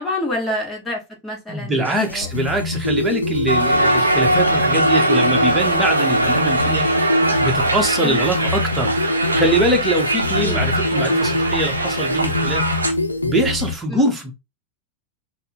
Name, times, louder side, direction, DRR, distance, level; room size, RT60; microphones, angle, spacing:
voice 1, 0.0-2.3 8.0-8.2 10.4-10.6 13.9-14.0, left 1 dB, 10° left, 1.7 m, -28 dB
voice 2, 1.5-12.7 13.2-14.3, right 1 dB, 10° right, 1.2 m, -23 dB
sound 1, 1.7-13.7, left 2 dB, 80° left, 0.5 m, -24 dB
Crowd, 3.5-12.9, right 1 dB, 80° right, 0.7 m, -21 dB
4.2 x 2.2 x 3.9 m
figure-of-eight pair, 90°, 0 cm